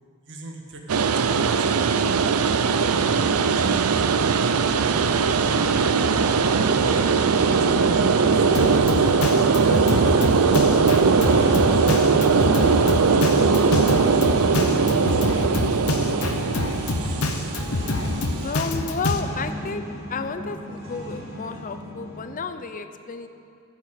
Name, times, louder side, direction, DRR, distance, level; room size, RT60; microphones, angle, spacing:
voice 1, 0.2-1.7 2.0-3.0 3.5-6.0 6.6-9.1 9.5-10.8 13.1-17.2, right 2 dB, 55° right, 1 dB, 1.6 m, -40 dB
sound 1, 0.9-18.5, right 5 dB, 75° right, 0.5 m, -20 dB
sound 2, 2.6-22.4, equal, 25° right, 2.7 m, -34 dB
Drum kit, 8.5-19.2, left 2 dB, 70° left, 0.8 m, -27 dB
voice 2, 18.4-19.8 20.1-23.3, left 4 dB, 35° left, 9 dB, 0.6 m, -31 dB
14.0 x 6.6 x 8.1 m, 2.6 s
head